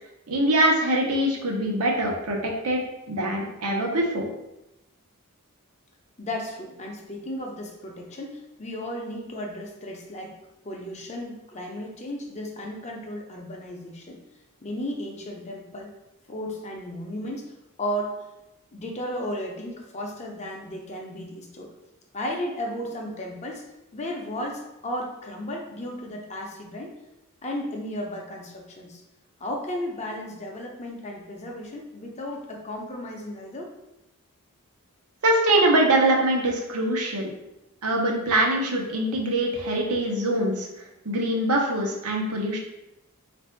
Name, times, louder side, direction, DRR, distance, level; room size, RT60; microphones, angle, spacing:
voice 1, 0.3-2.8 3.1-4.3 35.2-37.3 37.8-40.7 41.0-42.6, right 1 dB, 85° right, 0 dB, 0.9 m, -23 dB
voice 2, 6.2-10.3 10.6-14.2 14.6-15.9 16.3-17.5 17.8-18.2 18.7-21.7 22.1-23.7 23.9-26.9 27.4-29.0 29.4-33.7, left 1 dB, 30° left, 1 dB, 0.6 m, -34 dB
3.3 x 2.6 x 4.4 m, 0.92 s
head